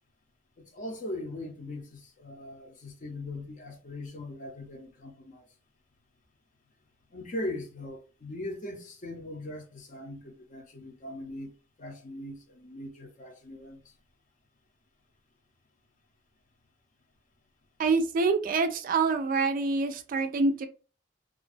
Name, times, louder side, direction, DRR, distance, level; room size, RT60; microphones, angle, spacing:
voice 1, 0.6-5.5 7.1-13.8, left 1 dB, 45° left, 0.6 m, -40 dB
voice 2, 17.8-20.7, right 4 dB, 50° right, 0.3 m, -26 dB
2.4 x 2.2 x 2.4 m
head